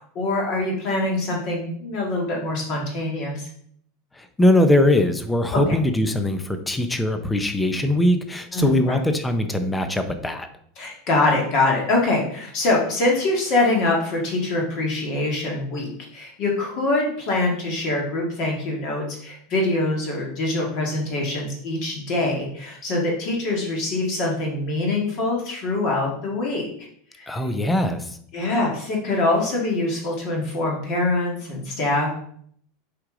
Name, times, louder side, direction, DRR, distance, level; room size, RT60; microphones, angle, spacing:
voice 1, 0.0-3.5 5.5-5.6 8.5-9.0 10.8-26.9 27.1-27.3 28.3-32.1, left 2 dB, 35° left, -1 dB, 1.7 m, -24 dB
voice 2, 4.2-10.5 27.3-28.2, left 1 dB, 5° left, 8 dB, 0.5 m, -21 dB
7.7 x 4.9 x 3.8 m, 0.62 s
supercardioid pair, 180°, 0 cm